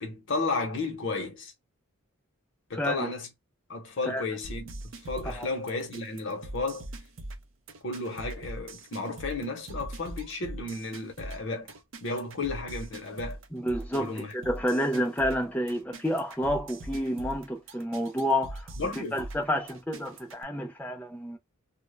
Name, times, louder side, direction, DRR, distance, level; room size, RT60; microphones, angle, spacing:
voice 1, 0.0-1.5 2.7-3.3 3.7-6.9 7.8-11.7 12.0-13.4 14.0-14.3 18.8-19.2, left 3 dB, 55° left, 0.7 m, -33 dB
voice 2, 2.8-3.1 4.1-4.2 5.2-5.5 13.5-18.6 19.1-21.4, equal, 5° left, 0.5 m, -29 dB
sound 1, 4.4-20.4, right 1 dB, 60° right, 0.5 m, -41 dB
2.1 x 2.0 x 3.1 m
head